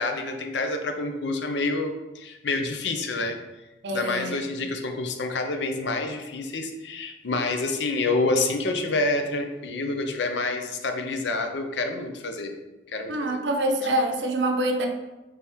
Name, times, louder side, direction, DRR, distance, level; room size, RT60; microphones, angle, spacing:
voice 1, 0.0-3.4 3.9-12.5 12.9-13.4, left 2 dB, 75° left, 5 dB, 0.6 m, -28 dB
voice 2, 3.8-4.4 13.1-14.9, right 1 dB, 70° right, 2 dB, 0.6 m, -25 dB
3.4 x 3.4 x 4.3 m, 1.1 s
head